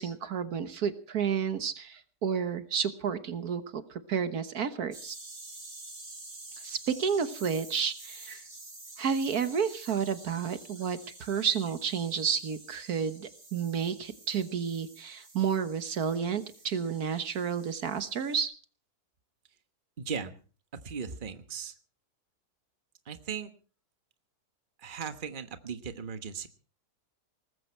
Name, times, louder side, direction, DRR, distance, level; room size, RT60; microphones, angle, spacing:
voice 1, 0.0-5.1 6.6-8.4 9.0-18.5, right 7 dB, 75° right, 10 dB, 1.7 m, -31 dB
sound 1, 4.9-18.4, right 2 dB, 50° right, 4.3 m, -49 dB
voice 2, 20.0-20.3 20.7-21.7 23.0-23.5 24.8-26.5, right 6 dB, 35° right, 9 dB, 1.3 m, -37 dB
19.5 x 15.0 x 4.5 m, 0.40 s
omnidirectional pair, 1.7 m